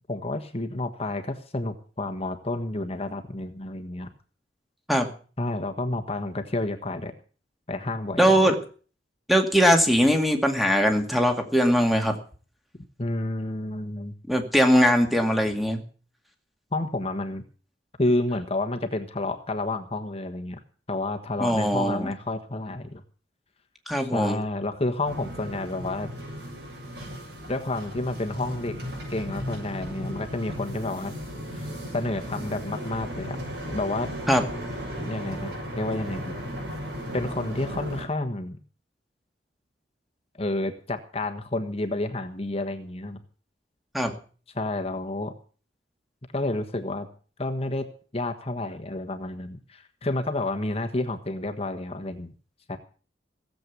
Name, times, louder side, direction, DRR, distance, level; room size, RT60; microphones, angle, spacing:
voice 1, 0.1-4.1 5.4-7.1 7.7-8.5 13.0-14.1 16.7-17.4 18.0-20.6 20.9-23.0 24.0-26.1 27.5-28.7 29.1-31.1 31.5-33.4 33.7-34.1 35.0-36.4 37.1-38.6 40.4-43.2 44.5-45.3 46.3-47.1 47.4-52.3 52.7-52.8, left 2 dB, 35° left, 7 dB, 1.4 m, -30 dB
voice 2, 8.2-8.6 9.3-12.1 14.3-15.8 21.4-22.1 23.9-24.4 34.3-34.4 43.9-44.1, equal, ahead, 4 dB, 2.2 m, -21 dB
sound 1, 25.0-38.0, equal, 60° right, 7.7 m, -36 dB
17.0 x 7.9 x 8.2 m, 0.40 s
head